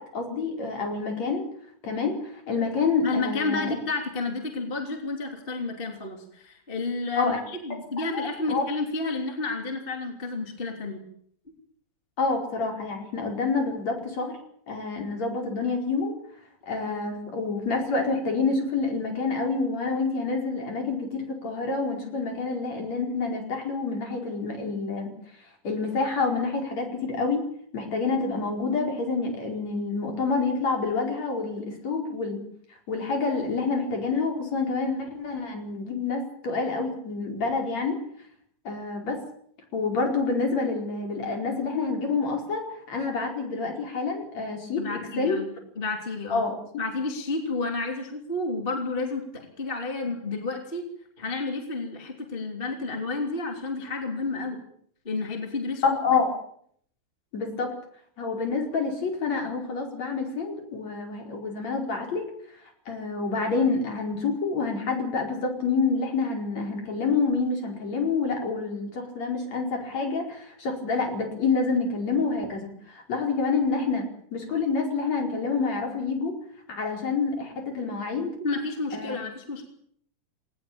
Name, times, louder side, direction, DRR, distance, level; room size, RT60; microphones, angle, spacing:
voice 1, 0.0-1.4 1.8-2.2 2.5-3.7 7.2-7.4 8.1-8.6 12.2-14.4 14.7-16.1 16.7-25.1 25.6-27.4 27.7-32.4 32.9-38.0 38.7-39.2 39.7-45.4 46.3-46.5 55.8-56.3 57.3-57.7 58.2-62.2 62.9-74.1 74.3-76.3 76.7-78.3 78.9-79.2, left 4 dB, 45° left, 3 dB, 5.8 m, -27 dB
voice 2, 3.0-11.0 44.8-46.4 46.8-50.8 51.2-54.6 55.0-55.8 78.4-79.6, left 3 dB, 15° left, 4 dB, 2.8 m, -31 dB
19.5 x 19.0 x 8.8 m, 0.65 s
omnidirectional pair, 4.4 m